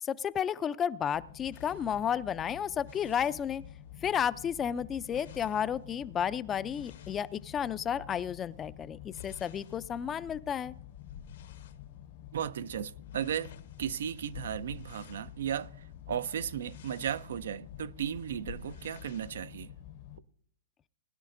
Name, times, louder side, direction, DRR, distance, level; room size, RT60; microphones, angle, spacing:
voice 1, 0.0-3.6 4.0-10.7, left 8 dB, 20° left, 0.3 m, -32 dB
sound 1, 1.1-20.2, left 11 dB, 50° left, 0.8 m, -49 dB
sound 2, 1.5-4.0 4.3-8.0 8.5-11.8 12.3-12.5 12.8-19.3, left 7 dB, 70° left, 1.0 m, -53 dB
voice 2, 12.3-13.5 13.8-19.7, right 9 dB, 70° right, 0.4 m, -35 dB
20.5 x 10.5 x 2.5 m
hypercardioid pair, 130°, 0 cm